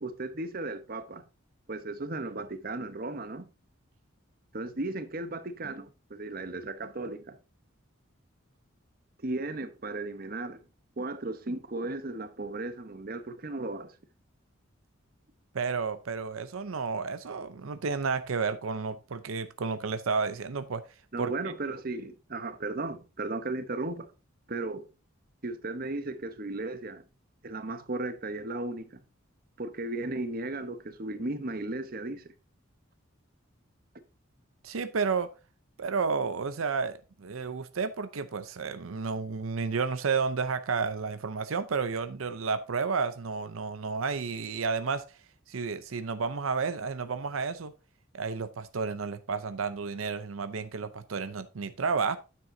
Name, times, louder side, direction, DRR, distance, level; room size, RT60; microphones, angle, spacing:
voice 1, 0.0-1.2 1.7-3.5 4.5-7.4 9.2-10.6 11.0-13.9 21.1-24.1 24.5-24.8 25.4-27.0 27.4-29.0 29.6-32.3, right 2 dB, 45° right, 0.9 m, -35 dB
voice 2, 15.5-20.8 21.2-21.3 34.6-35.3 35.8-45.1 45.5-47.7 48.1-52.2, right 5 dB, 85° right, 0.6 m, -31 dB
9.6 x 7.6 x 2.7 m
head